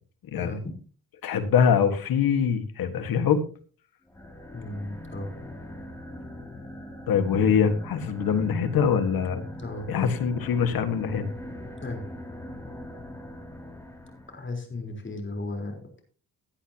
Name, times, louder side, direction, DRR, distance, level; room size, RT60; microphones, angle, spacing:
voice 1, 0.4-0.7 4.5-5.5 7.3-7.4 9.6-9.9 11.8-12.1 14.3-16.0, left 2 dB, 35° left, 3 dB, 4.2 m, -35 dB
voice 2, 1.2-3.4 7.1-9.4 9.9-11.2, left 7 dB, 85° left, 9 dB, 1.7 m, -23 dB
sound 1, 4.1-14.5, left 1 dB, 10° left, 2.7 m, -41 dB
16.5 x 10.5 x 2.9 m, 0.38 s
cardioid pair, 95°, 34 cm